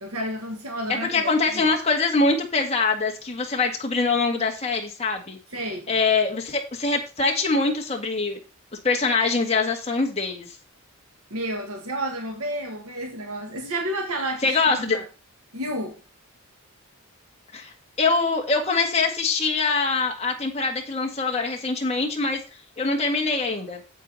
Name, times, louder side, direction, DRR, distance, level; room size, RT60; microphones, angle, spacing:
voice 1, 0.0-1.7 5.5-6.0 11.3-15.0 15.5-16.0, right 1 dB, 75° right, 1.8 m, -31 dB
voice 2, 0.9-5.4 5.9-8.4 8.8-10.5 14.4-15.0 17.5-22.4 22.8-23.8, left 4 dB, 30° left, 1.8 m, -23 dB
8.4 x 7.8 x 4.1 m
head